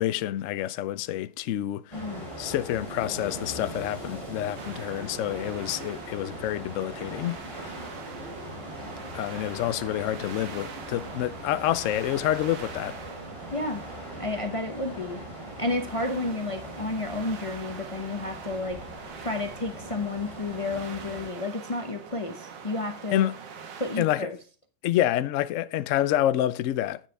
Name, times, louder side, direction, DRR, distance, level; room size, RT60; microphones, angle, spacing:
voice 1, 0.0-1.8 2.4-7.4 9.1-13.0 23.1-23.4 24.0-24.3 24.8-27.0, left 12 dB, 75° left, 0.7 m, -28 dB
voice 2, 1.9-2.3 13.5-13.8 14.2-15.2 15.6-18.8 19.2-23.3 23.8-24.4, left 2 dB, 45° left, 0.4 m, -31 dB
sound 1, 1.9-21.3, equal, 15° right, 2.8 m, -41 dB
sound 2, 4.6-24.0, right 6 dB, 80° right, 1.9 m, -44 dB
9.1 x 7.3 x 3.2 m
omnidirectional pair, 1.9 m